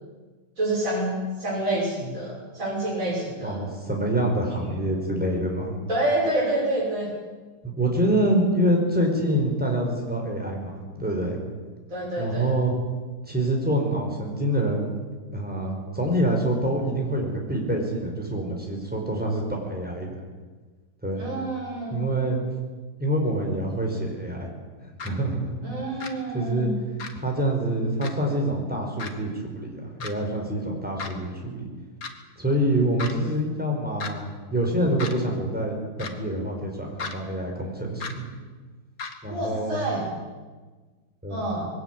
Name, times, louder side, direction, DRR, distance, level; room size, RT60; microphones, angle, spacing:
voice 1, 0.6-3.7 4.6-4.8 5.9-7.1 11.9-12.5 21.2-22.0 25.6-26.7 39.3-40.0 41.3-41.7, right 1 dB, 45° right, -5 dB, 6.4 m, -28 dB
voice 2, 3.4-5.8 7.6-11.4 12.2-12.7 13.3-14.8 15.3-20.1 21.0-21.3 21.9-22.4 23.0-24.5 24.8-25.5 26.3-26.7 27.2-31.7 32.4-38.2 39.2-39.8 41.2-41.5, right 1 dB, 5° right, 0 dB, 5.4 m, -26 dB
sound 1, 25.0-25.1 26.0-26.1 27.0-27.1 28.0-28.1 29.0-29.1 30.0-30.1 31.0-31.1 32.0-32.1 33.0-33.1 34.0-34.1 35.0-35.1 36.0-36.1 37.0-37.1 38.0-38.1 39.0-39.2, left 5 dB, 55° left, 2.1 m, -34 dB
21.5 x 16.5 x 9.7 m, 1.3 s
omnidirectional pair, 1.9 m